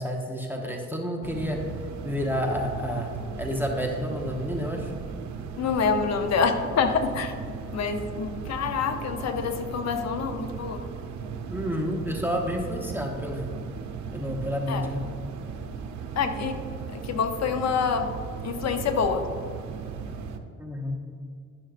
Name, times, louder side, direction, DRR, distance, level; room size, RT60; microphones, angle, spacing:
voice 1, 0.0-1.6 2.0-3.1 3.4-4.9 11.5-13.4 14.1-15.0 20.6-21.1, equal, 5° right, 0 dB, 0.9 m, -30 dB
sound 1, 1.2-20.4, right 6 dB, 65° right, 0.6 m, -37 dB
voice 2, 5.6-7.3 7.7-10.8 14.7-14.9 16.2-16.6 16.9-18.1 18.4-19.2, left 5 dB, 60° left, 7 dB, 0.7 m, -26 dB
11.5 x 6.3 x 2.4 m, 2.2 s
cardioid pair, 90°, 30 cm